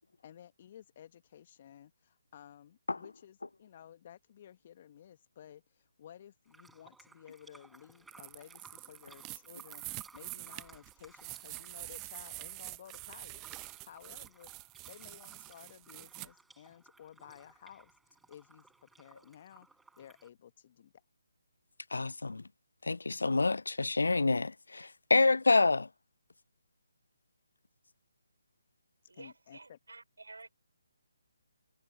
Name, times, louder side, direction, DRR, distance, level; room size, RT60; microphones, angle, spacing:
voice 1, 0.2-14.5 14.9-17.9 18.3-19.7 20.0-20.9 29.1-29.8, left 10 dB, 40° left, 1.6 m, -55 dB
sound 1, 6.5-20.3, right 3 dB, 5° right, 5.6 m, -61 dB
sound 2, 8.1-16.3, right 25 dB, 20° right, 0.9 m, -46 dB
voice 2, 21.9-22.4 22.8-25.9, left 3 dB, 75° left, 0.3 m, -27 dB
voice 3, 29.1-30.5, right 3 dB, 75° right, 5.4 m, -51 dB
figure-of-eight pair, 145°, 0 cm